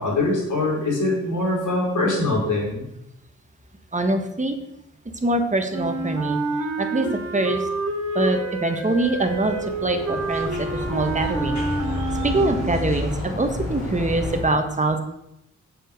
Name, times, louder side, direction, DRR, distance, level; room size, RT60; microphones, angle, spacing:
voice 1, 0.0-2.8, left 2 dB, 80° left, -5 dB, 4.6 m, -23 dB
voice 2, 3.9-4.5 5.2-6.4 6.8-7.6 8.1-9.6 9.8-11.6 12.2-15.0, right 2 dB, 25° right, 6 dB, 1.5 m, -23 dB
Wind instrument woodwind instrument, 5.7-13.0, right 2 dB, 70° right, 3.6 m, -28 dB
sound 1, 8.8-14.4, left 2 dB, 65° left, 4.1 m, -31 dB
7.7 x 7.2 x 6.5 m, 0.83 s
cardioid pair, 80°, 30 cm